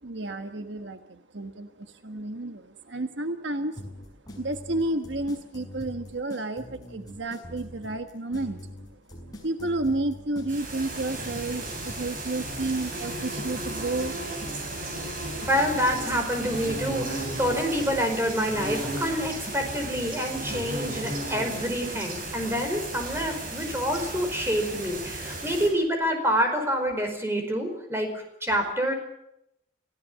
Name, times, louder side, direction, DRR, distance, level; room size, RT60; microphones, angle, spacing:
voice 1, 0.0-3.8 4.4-8.8 9.2-14.1, right 2 dB, 65° right, 7 dB, 1.4 m, -31 dB
sound 1, 3.8-20.8, equal, 20° left, 6.1 m, -43 dB
sound 2, 10.5-25.7, right 2 dB, 45° right, 7.8 m, -34 dB
voice 2, 15.5-28.9, equal, 15° right, 4 dB, 4.9 m, -27 dB
28.0 x 17.0 x 7.5 m, 0.82 s
head